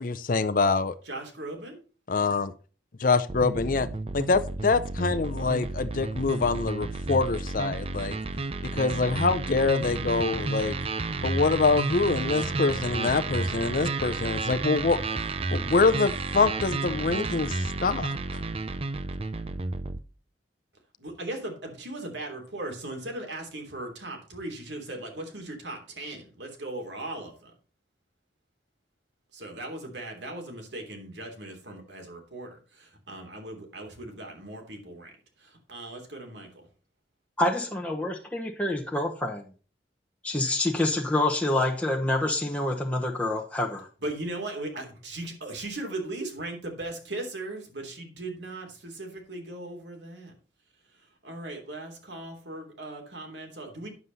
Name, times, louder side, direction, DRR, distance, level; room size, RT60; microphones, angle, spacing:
voice 1, 0.0-0.9 2.1-2.5 3.0-3.9 4.1-8.2 8.7-10.8 11.2-15.0 15.5-18.4, left 4 dB, 50° left, 11 dB, 0.6 m, -25 dB
voice 2, 1.1-1.8 21.0-27.5 29.3-35.1 35.4-36.5 44.0-50.3 51.2-53.9, right 2 dB, 80° right, 2 dB, 3.2 m, -38 dB
sound 1, 3.3-20.0, right 3 dB, 35° right, 0.6 m, -31 dB
voice 3, 37.4-39.5 40.2-43.9, left 1 dB, 10° left, -1 dB, 1.1 m, -27 dB
9.6 x 7.5 x 4.0 m, 0.37 s
head